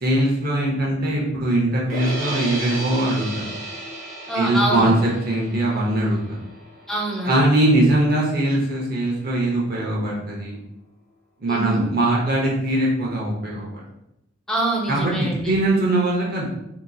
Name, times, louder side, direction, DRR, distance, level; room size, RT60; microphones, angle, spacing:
voice 1, 0.0-3.5 4.3-6.2 7.2-10.6 11.4-13.8 14.9-15.1 15.4-16.5, right 1 dB, 50° right, -3 dB, 0.8 m, -21 dB
sound 1, 1.9-8.1, right 1 dB, 85° right, 1.4 m, -34 dB
voice 2, 4.3-4.9 6.9-7.4 11.5-11.9 14.5-15.5, right 1 dB, 5° left, -1 dB, 0.5 m, -25 dB
3.8 x 2.9 x 2.3 m, 0.84 s
head